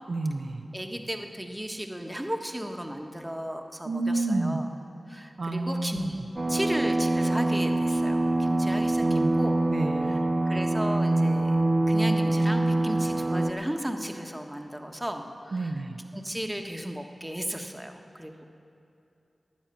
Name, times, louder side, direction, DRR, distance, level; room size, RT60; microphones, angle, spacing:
voice 1, 0.1-0.7 3.8-4.6 5.4-6.1 9.0-9.4 9.7-10.1 15.5-16.0, right 2 dB, 70° right, 5 dB, 1.2 m, -29 dB
voice 2, 0.7-4.6 5.1-6.2 6.5-9.6 10.1-10.2 10.5-11.6 11.9-15.7 16.1-18.4, equal, 10° right, 4 dB, 1.5 m, -35 dB
sound 1, 6.4-13.5, right 2 dB, 40° right, 0.9 m, -24 dB
13.0 x 10.0 x 9.2 m, 2.7 s
cardioid pair, 45°, 0 cm